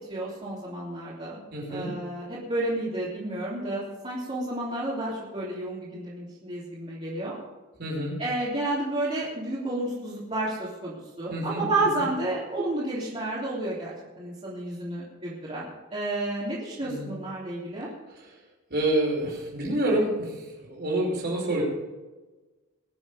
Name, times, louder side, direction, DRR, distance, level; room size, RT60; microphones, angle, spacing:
voice 1, 0.1-1.4 1.7-7.4 8.2-17.9, right 2 dB, 30° right, -9 dB, 3.4 m, -31 dB
voice 2, 1.5-1.9 7.8-8.2 11.3-11.6 12.0-12.1 16.8-17.1 18.7-20.3 20.7-21.6, right 1 dB, 50° right, -2 dB, 5.1 m, -27 dB
21.5 x 7.5 x 5.2 m, 1.2 s
head